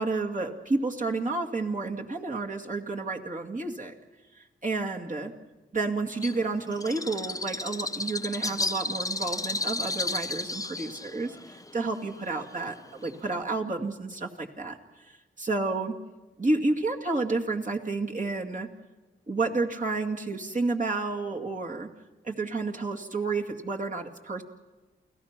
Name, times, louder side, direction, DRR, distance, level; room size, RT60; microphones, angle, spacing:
voice 1, 0.0-3.9 4.4-5.3 5.7-14.8 15.1-15.9 16.4-18.7 19.3-21.9 22.2-24.4, right 3 dB, 40° right, 1 dB, 2.2 m, -30 dB
Bird, 6.2-13.4, left 2 dB, 15° left, 0.7 m, -33 dB
29.0 x 17.0 x 6.0 m, 1.2 s
cardioid pair, 60°, 21 cm